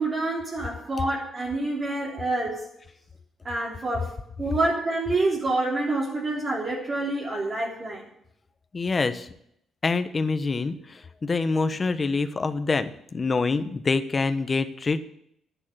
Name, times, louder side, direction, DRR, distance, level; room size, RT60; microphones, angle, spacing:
voice 1, 0.0-2.7 3.4-8.0, right 2 dB, 35° right, -5 dB, 3.5 m, -27 dB
voice 2, 8.7-9.3 9.8-15.0, left 4 dB, 30° left, 11 dB, 1.1 m, -26 dB
10.5 x 9.3 x 7.7 m, 0.72 s
cardioid pair, 90°, 0 cm